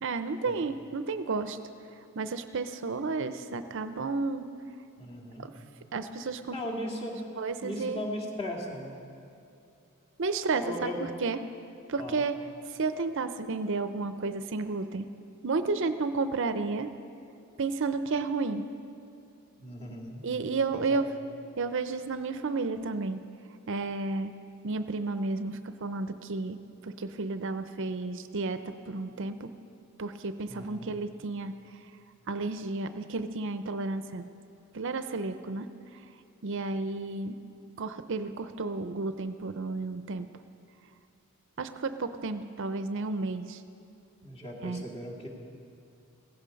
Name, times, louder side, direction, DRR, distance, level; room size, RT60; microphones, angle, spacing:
voice 1, 0.0-1.6 2.2-4.5 5.4-5.5 5.9-6.6 7.4-8.0 10.2-10.9 11.2-11.4 11.9-12.4 12.7-15.1 15.4-16.9 17.6-18.6 20.2-21.1 21.6-23.2 23.7-24.3 24.6-26.6 26.8-28.6 28.9-29.5 30.0-31.5 32.3-34.3 34.7-35.7 36.4-37.4 37.8-40.3 41.6-43.6 44.6-44.8, right 3 dB, 60° right, 10 dB, 0.6 m, -32 dB
voice 2, 5.0-5.5 6.5-7.2 7.6-9.0 10.6-11.0 12.0-12.2 19.6-20.2 20.7-21.0 30.5-30.9 44.2-45.3, equal, 25° left, -2 dB, 2.4 m, -37 dB
16.5 x 15.5 x 5.3 m, 2.7 s
head